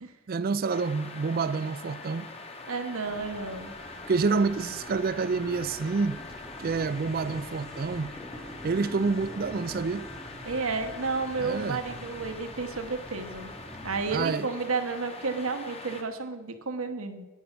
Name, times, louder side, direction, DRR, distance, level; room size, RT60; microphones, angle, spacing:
voice 1, 0.3-2.3 4.1-6.2 6.6-8.1 8.6-10.1 11.4-11.8 14.1-14.5, right 4 dB, 45° right, 0.4 m, -28 dB
sound 1, 0.7-16.0, left 3 dB, 25° left, 1.0 m, -44 dB
sound 2, 1.0-12.9, left 4 dB, 75° left, 3.9 m, -53 dB
voice 2, 2.7-3.8 10.4-13.5 13.8-17.3, right 4 dB, 70° right, 1.0 m, -32 dB
sound 3, 3.0-14.3, equal, ahead, 0.8 m, -46 dB
9.4 x 9.3 x 5.9 m
head